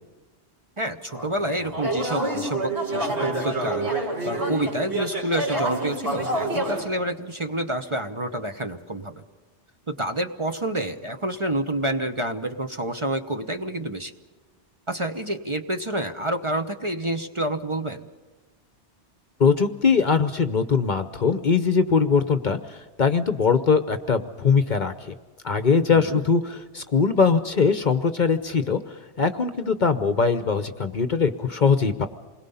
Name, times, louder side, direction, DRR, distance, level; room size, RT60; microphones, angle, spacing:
voice 1, 0.8-3.9 4.2-9.2 9.9-14.1 14.9-18.1 25.9-26.2, right 1 dB, 30° right, 6 dB, 0.9 m, -28 dB
sound 1, 1.1-6.8, right 1 dB, 70° right, 5.0 m, -27 dB
voice 2, 19.4-25.1 25.4-32.1, left 5 dB, 45° left, 10 dB, 0.9 m, -21 dB
28.0 x 21.0 x 5.6 m, 1.2 s
omnidirectional pair, 1.2 m